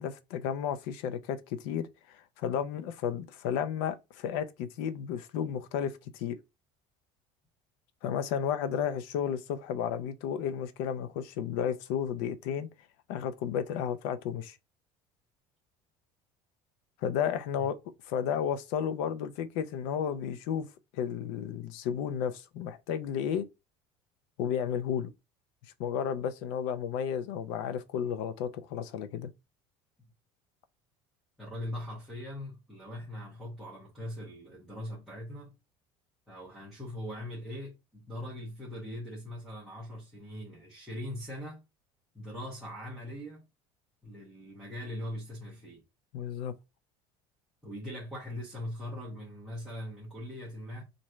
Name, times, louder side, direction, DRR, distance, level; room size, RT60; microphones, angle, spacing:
voice 1, 0.0-6.4 8.0-12.7 13.1-14.6 17.0-17.8 18.1-20.7 20.9-23.5 24.4-25.1 25.8-29.3 46.1-46.5, left 8 dB, 85° left, 0.6 m, -33 dB
voice 2, 31.4-35.5 36.3-41.6 42.1-43.4 44.0-45.8 47.6-50.8, left 1 dB, ahead, 1.1 m, -41 dB
3.1 x 2.6 x 4.3 m
cardioid pair, 165°, 12 cm